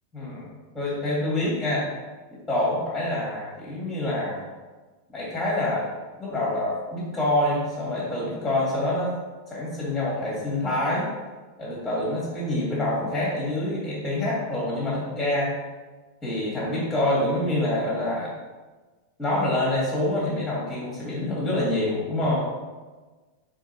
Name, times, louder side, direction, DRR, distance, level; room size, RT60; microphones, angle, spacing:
voice 1, 0.1-1.9 2.5-4.4 5.1-5.9 6.2-9.2 9.5-11.1 11.6-15.5 16.2-18.3 19.2-22.4, left 1 dB, 10° left, -6 dB, 0.9 m, -26 dB
3.8 x 2.6 x 2.6 m, 1.3 s
figure-of-eight pair, 90°, 0 cm